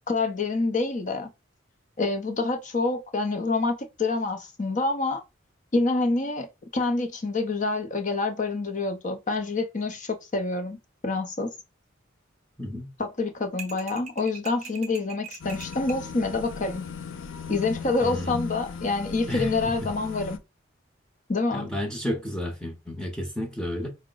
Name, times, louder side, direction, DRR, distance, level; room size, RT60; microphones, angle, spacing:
voice 1, 0.1-1.3 2.0-5.2 5.7-6.5 6.7-10.8 11.0-11.5 13.0-16.8 17.5-20.4 21.3-21.7, left 3 dB, 40° left, 0.7 m, -27 dB
voice 2, 12.6-12.9 18.0-18.3 19.3-19.7 21.5-23.9, left 1 dB, 5° left, 0.7 m, -32 dB
sound 1, 13.6-16.0, right 6 dB, 35° right, 0.6 m, -42 dB
sound 2, 15.4-20.4, left 5 dB, 80° left, 0.5 m, -37 dB
4.7 x 2.1 x 3.8 m
head